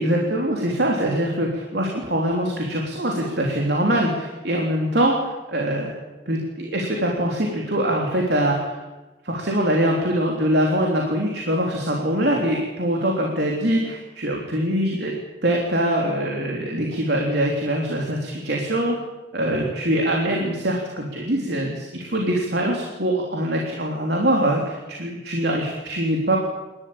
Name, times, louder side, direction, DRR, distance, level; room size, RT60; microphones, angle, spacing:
voice 1, 0.0-5.9 6.3-8.8 9.2-15.1 15.4-19.0 19.3-26.4, right 1 dB, 70° right, -1 dB, 3.6 m, -23 dB
28.0 x 13.5 x 8.9 m, 1.1 s
head